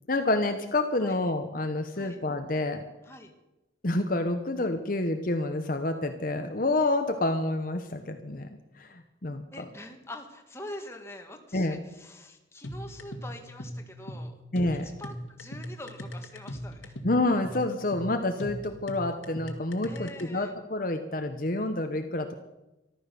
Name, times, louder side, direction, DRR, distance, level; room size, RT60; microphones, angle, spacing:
voice 1, 0.1-2.8 3.8-8.5 8.8-9.6 11.5-11.8 14.5-14.9 17.0-22.4, left 2 dB, 45° left, 6 dB, 1.0 m, -28 dB
voice 2, 9.5-14.3 14.8-16.9 19.8-20.5, left 1 dB, 15° left, 3 dB, 1.7 m, -44 dB
sound 1, 12.6-20.2, equal, 85° left, 1.8 m, -39 dB
14.0 x 12.5 x 6.9 m, 0.99 s
head